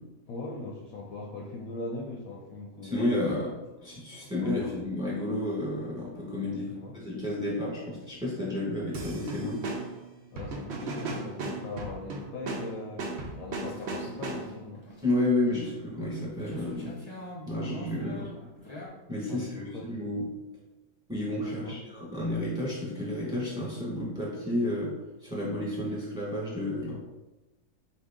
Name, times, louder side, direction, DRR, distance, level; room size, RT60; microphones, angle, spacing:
voice 1, 0.3-3.0 4.2-4.9 6.4-7.0 9.4-9.5 10.3-14.9 18.2-18.3 19.3-19.9 21.4-21.8, left 3 dB, 70° left, -1 dB, 1.0 m, -40 dB
voice 2, 2.9-3.5 3.8-6.6 6.9-9.6 15.0-17.0 17.5-18.3 19.1-20.2 21.1-24.9 25.2-27.0, left 1 dB, 5° right, -6 dB, 1.3 m, -31 dB
sound 1, 8.9-14.7, right 3 dB, 60° right, 0.7 m, -37 dB
sound 2, 13.6-18.9, left 1 dB, 25° left, 0.7 m, -45 dB
4.7 x 2.8 x 3.6 m, 1.1 s
omnidirectional pair, 1.7 m